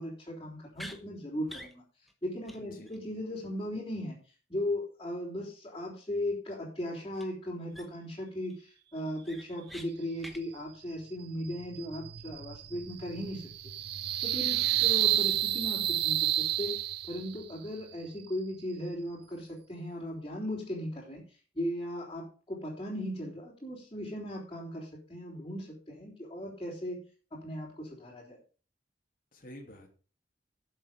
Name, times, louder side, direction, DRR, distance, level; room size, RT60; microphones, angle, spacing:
voice 1, 0.0-1.8 2.2-4.2 4.5-13.5 14.2-16.8 17.1-21.2 21.5-28.4, left 1 dB, 25° left, -8 dB, 3.7 m, -37 dB
sound 1, 0.7-1.0 1.5-1.7 2.1-2.2 2.5-2.6 2.9-3.0 7.1-7.3 7.7-8.1 8.5-8.6 8.9-9.9 10.2-10.4, equal, ahead, 1.1 m, -46 dB
voice 2, 2.6-2.9 14.5-14.9 29.3-29.9, left 1 dB, 45° left, 0 dB, 2.7 m, -49 dB
sound 2, 11.4-17.4, right 13 dB, 55° right, 0.6 m, -30 dB
12.0 x 7.3 x 5.2 m, 0.38 s
head